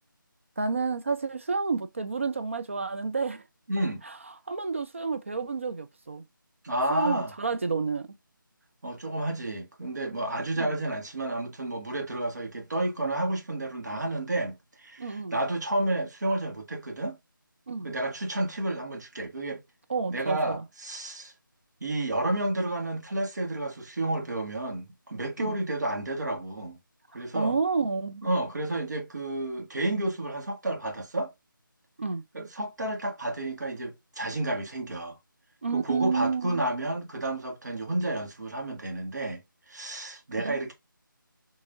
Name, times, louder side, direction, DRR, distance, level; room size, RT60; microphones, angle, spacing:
voice 1, 0.6-3.4 4.0-4.2 4.5-6.2 6.9-8.1 10.6-10.7 13.9-14.0 15.0-15.4 17.7-17.9 19.9-20.6 25.4-25.5 27.3-28.2 32.0-32.2 35.6-36.6 40.4-40.6, right 4 dB, 35° right, 0.4 m, -30 dB
voice 2, 3.7-4.0 6.6-7.3 8.8-17.2 17.8-19.6 20.1-21.3 21.8-26.8 27.1-27.6 28.2-31.3 32.3-35.2 35.7-39.4 39.7-40.7, right 1 dB, 55° right, 1.6 m, -31 dB
5.9 x 3.0 x 2.6 m
figure-of-eight pair, 160°, 11 cm